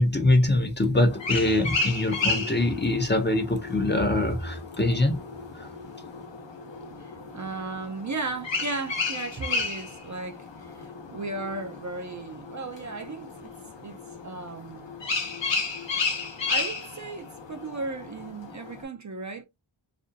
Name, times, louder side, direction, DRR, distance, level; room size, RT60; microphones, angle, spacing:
voice 1, 0.0-5.2 5.5-5.7, left 2 dB, 20° left, 0.6 m, -23 dB
sound 1, 1.1-18.8, left 4 dB, 60° left, 0.9 m, -33 dB
voice 2, 7.0-13.5 13.8-14.0 14.2-14.9 16.5-19.4, right 3 dB, 35° right, 0.5 m, -35 dB
2.5 x 2.0 x 2.6 m
cardioid pair, 45°, 49 cm